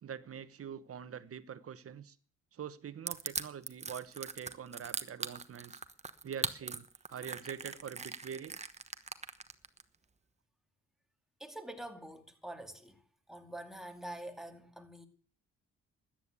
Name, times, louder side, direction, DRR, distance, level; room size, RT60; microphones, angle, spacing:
voice 1, 0.0-2.2 2.5-5.8 6.2-8.6, right 8 dB, 50° right, 1.1 m, -44 dB
Crushing, 3.1-9.8, right 4 dB, 20° right, 1.2 m, -39 dB
voice 2, 11.4-13.0 13.3-15.1, right 1 dB, ahead, 2.5 m, -46 dB
13.5 x 10.0 x 8.2 m
cardioid pair, 90°, 30 cm